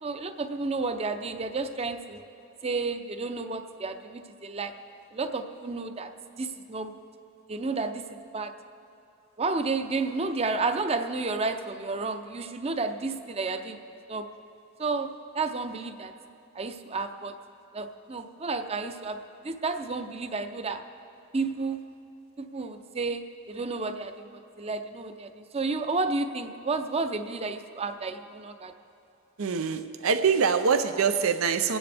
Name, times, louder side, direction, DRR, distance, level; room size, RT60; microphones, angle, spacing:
voice 1, 0.0-2.2 2.6-4.7 5.1-6.1 6.4-6.9 7.5-8.5 9.4-13.8 14.1-14.3 14.8-16.1 16.5-17.3 17.7-19.2 19.4-20.8 21.3-21.9 22.4-28.7, right 3 dB, 30° right, 8 dB, 0.6 m, -31 dB
voice 2, 29.4-31.8, right 6 dB, 85° right, 9 dB, 0.6 m, -24 dB
25.0 x 9.7 x 3.4 m, 2.7 s
head